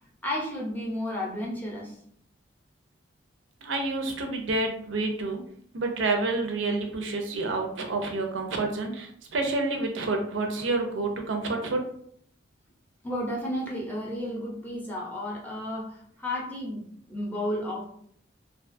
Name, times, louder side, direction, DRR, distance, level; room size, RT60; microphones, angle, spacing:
voice 1, 0.2-2.0 13.0-17.8, left 1 dB, 10° left, -4 dB, 0.6 m, -32 dB
voice 2, 3.6-5.4 5.7-11.8, right 3 dB, 85° right, 3 dB, 0.5 m, -28 dB
2.4 x 2.3 x 2.5 m, 0.64 s
head